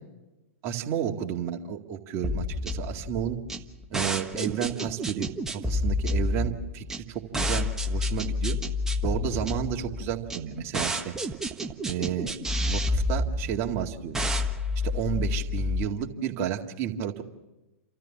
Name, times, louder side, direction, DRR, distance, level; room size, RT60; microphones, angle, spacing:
voice 1, 0.6-3.4 3.9-8.6 9.0-11.1 11.8-12.3 12.6-14.2 14.8-17.2, right 9 dB, 40° right, 3 dB, 2.0 m, -32 dB
sound 1, 2.2-15.8, left 2 dB, 5° right, 1.3 m, -29 dB
30.0 x 13.5 x 7.3 m, 1.1 s
hypercardioid pair, 115°, 8 cm